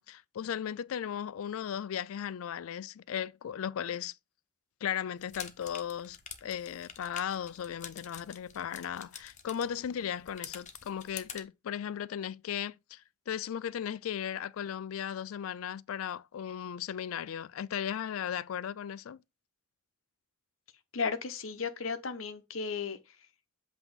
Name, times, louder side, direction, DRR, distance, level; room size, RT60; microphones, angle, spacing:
voice 1, 0.0-4.2 4.8-19.2, left 9 dB, 85° left, 0.4 m, -36 dB
sound 1, 5.2-11.4, left 7 dB, 35° left, 0.9 m, -48 dB
voice 2, 20.9-23.0, left 5 dB, 70° left, 0.8 m, -34 dB
8.0 x 2.9 x 5.3 m
head